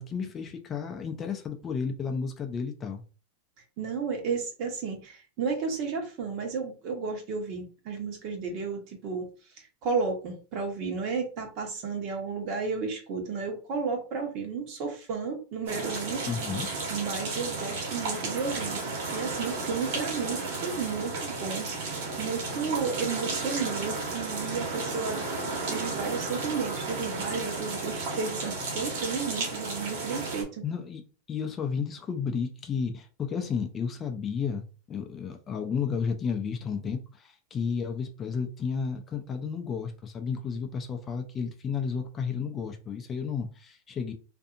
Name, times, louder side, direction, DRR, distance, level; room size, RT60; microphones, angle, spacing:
voice 1, 0.0-3.0 16.3-16.7 30.6-31.0 31.3-44.1, left 6 dB, 20° left, 0.4 m, -32 dB
voice 2, 3.8-9.3 9.6-16.2 16.9-18.8 19.1-30.6, right 5 dB, 45° right, 1.0 m, -33 dB
sound 1, 15.7-30.4, right 3 dB, 65° right, 1.3 m, -33 dB
2.6 x 2.6 x 2.5 m
supercardioid pair, 140°, 0 cm